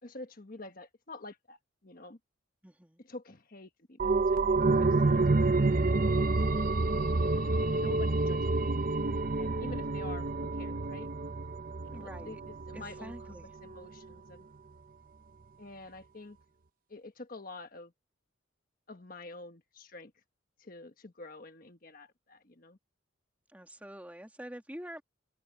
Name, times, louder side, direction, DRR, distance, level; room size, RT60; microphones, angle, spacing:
voice 1, 0.0-1.6 1.8-2.2 3.0-5.2 5.6-6.8 7.7-8.8 9.4-10.3 10.6-11.1 11.8-13.1 13.6-14.4 15.6-16.4 16.9-17.9 18.9-20.1 20.6-22.8, left 2 dB, 45° left, 1.4 m, -48 dB
voice 2, 2.6-3.0 11.9-12.4 12.7-13.5 23.5-25.0, equal, 10° right, 2.0 m, -46 dB
sound 1, 4.0-13.3 13.7-13.8, right 3 dB, 45° right, 0.7 m, -28 dB
head